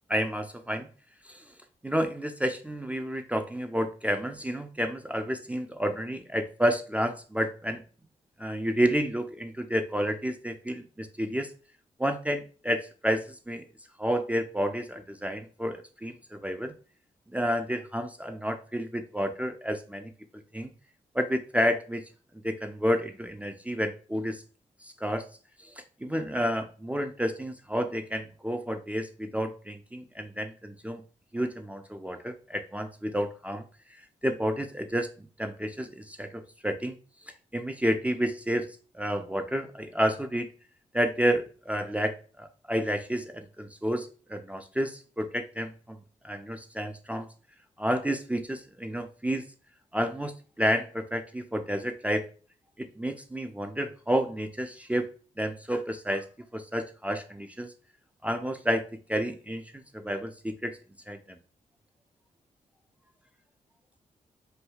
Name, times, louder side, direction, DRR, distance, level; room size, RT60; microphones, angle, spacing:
voice 1, 0.1-0.9 1.2-1.5 1.8-7.8 8.4-11.5 12.0-13.6 14.0-16.7 17.3-20.1 20.5-20.7 21.1-22.0 22.3-24.4 24.8-25.3 25.6-31.0 31.3-33.7 34.2-37.0 37.5-40.5 40.9-46.0 46.2-47.3 47.8-49.5 49.9-52.3 52.8-55.1 55.4-56.3 56.5-57.7 58.2-59.6 59.9-60.8 61.1-61.4, equal, 10° right, 5 dB, 0.4 m, -30 dB
3.2 x 2.2 x 2.3 m, 0.38 s
supercardioid pair, 40°, 16 cm